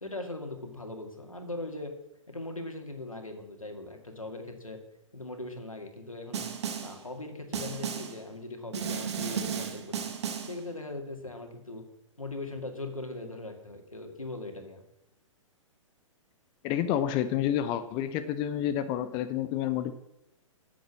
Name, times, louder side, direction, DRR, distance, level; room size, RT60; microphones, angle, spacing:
voice 1, 0.0-1.9 2.3-4.8 5.1-6.4 6.8-10.0 10.4-11.8 12.2-14.8, left 2 dB, 85° left, 4 dB, 2.3 m, -40 dB
Snare drum, 6.3-7.0 7.5-8.2 8.7-10.6, right 7 dB, 55° right, 1.6 m, -34 dB
voice 2, 16.6-19.9, left 10 dB, 25° left, 11 dB, 0.6 m, -29 dB
10.5 x 7.6 x 7.4 m, 0.85 s
figure-of-eight pair, 115°, 17 cm